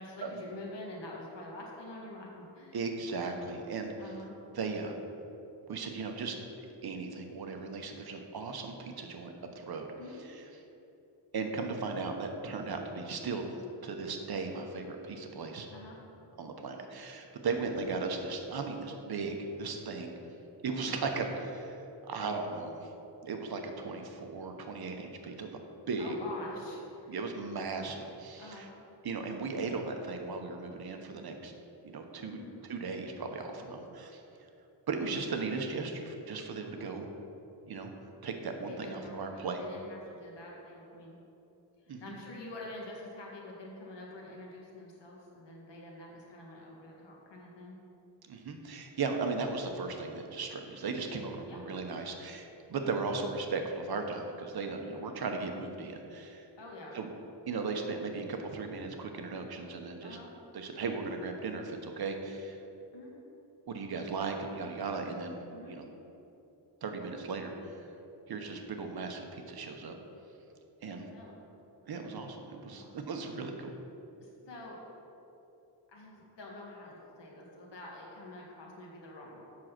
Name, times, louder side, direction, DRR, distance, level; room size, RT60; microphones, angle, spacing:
voice 1, 0.0-2.8 4.0-4.4 10.0-10.2 15.7-16.0 21.2-21.3 26.0-27.1 28.4-28.7 32.3-32.5 36.7-37.0 38.7-41.2 41.9-47.8 51.5-51.6 55.0-55.1 56.6-57.0 60.0-60.3 62.9-63.1 65.5-65.8 70.8-71.4 72.8-72.9 74.2-74.8 75.9-79.4, left 2 dB, 75° left, -2 dB, 1.9 m, -47 dB
voice 2, 2.7-3.9 4.5-5.0 5.7-9.9 10.3-10.4 11.3-15.7 16.4-20.1 20.6-21.8 22.0-22.9 23.2-25.6 25.9-26.2 27.1-28.7 29.0-31.5 31.8-32.4 32.7-34.2 34.9-37.1 37.7-37.9 38.2-39.6 41.9-42.1 48.2-56.5 56.9-57.1 57.5-60.2 60.5-62.6 63.7-65.4 65.7-65.8 66.8-67.9 68.3-70.0 70.8-71.0 71.9-73.7, right 4 dB, 55° right, 4 dB, 1.0 m, -37 dB
7.5 x 6.2 x 5.9 m, 2.9 s
wide cardioid pair, 140°, 44 cm